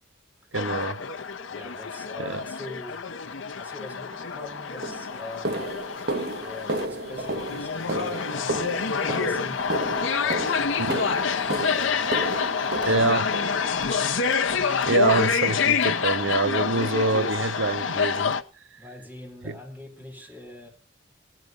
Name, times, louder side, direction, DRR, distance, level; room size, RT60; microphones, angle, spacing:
sound 1, 0.5-18.4, left 6 dB, 70° left, 1.0 m, -27 dB
voice 1, 0.5-1.0 2.2-2.4 10.8-11.0 12.9-13.3 14.9-18.4 19.4-19.5, right 3 dB, 70° right, 0.8 m, -25 dB
voice 2, 1.5-3.1 3.5-5.7 6.4-9.7 10.1-14.0 18.8-20.7, left 2 dB, 10° right, 4.7 m, -43 dB
sound 2, 4.1-4.3 4.8-14.0 14.5-14.9 15.1-15.3 15.7-15.9 16.3-16.4 17.0-17.1, right 1 dB, 50° right, 1.6 m, -33 dB
17.0 x 10.5 x 5.4 m
head